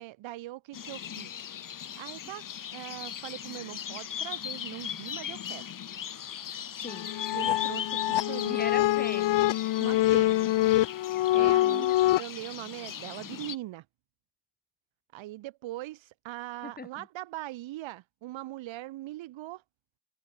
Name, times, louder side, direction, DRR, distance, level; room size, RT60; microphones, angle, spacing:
voice 1, 0.0-1.5 2.0-2.5 2.7-5.7 7.3-8.6 9.8-10.5 11.3-13.9 15.1-19.6, right 16 dB, 80° right, 7.4 m, -41 dB
sound 1, 0.7-13.6, left 9 dB, 45° left, 7.7 m, -39 dB
sound 2, 6.9-12.2, left 15 dB, 70° left, 2.9 m, -25 dB
voice 2, 8.5-9.6 11.3-11.9 16.6-17.0, left 4 dB, 20° left, 7.7 m, -39 dB
cardioid pair, 135°, 45 cm